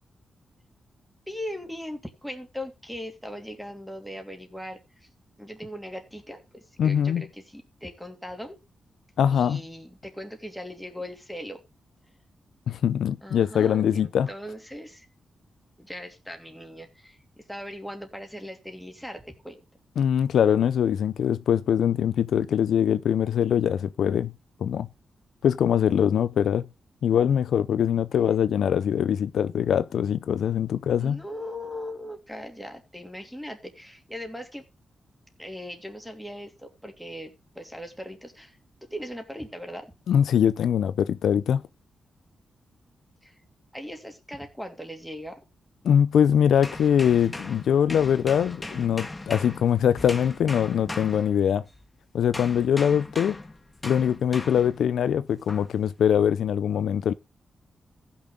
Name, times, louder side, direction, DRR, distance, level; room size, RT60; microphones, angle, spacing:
voice 1, 1.3-5.1 5.4-8.6 9.3-11.6 13.2-15.1 15.8-19.6 31.0-34.6 35.4-39.9 43.2-43.3 43.7-45.4, equal, ahead, 2.9 m, -39 dB
voice 2, 6.8-7.2 9.2-9.6 12.7-14.3 20.0-24.3 24.6-24.9 25.4-26.6 27.0-31.2 40.1-41.6 45.8-51.6 52.1-53.4 53.8-57.1, left 9 dB, 85° left, 0.5 m, -22 dB
sound 1, 46.6-51.8 52.3-54.8 55.5-55.8, left 2 dB, 20° left, 1.5 m, -38 dB
15.5 x 6.3 x 3.8 m
cardioid pair, 75°, 0 cm